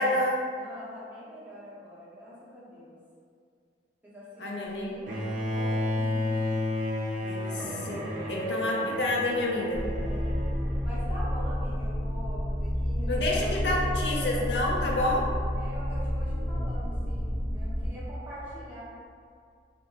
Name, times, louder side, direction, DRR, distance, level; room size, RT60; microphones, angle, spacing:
voice 1, 0.0-0.4 4.4-5.0 7.2-9.9 13.1-15.3, left 1 dB, 70° left, -2 dB, 0.4 m, -29 dB
voice 2, 0.5-3.0 4.0-6.4 9.9-10.4 10.8-14.6 15.6-18.8, equal, 10° right, -10 dB, 0.7 m, -44 dB
Bowed string instrument, 5.1-11.1, left 1 dB, 50° right, 0.5 m, -32 dB
sound 1, 9.7-17.9, equal, 35° left, 0.9 m, -30 dB
2.7 x 2.0 x 2.8 m, 2.2 s
head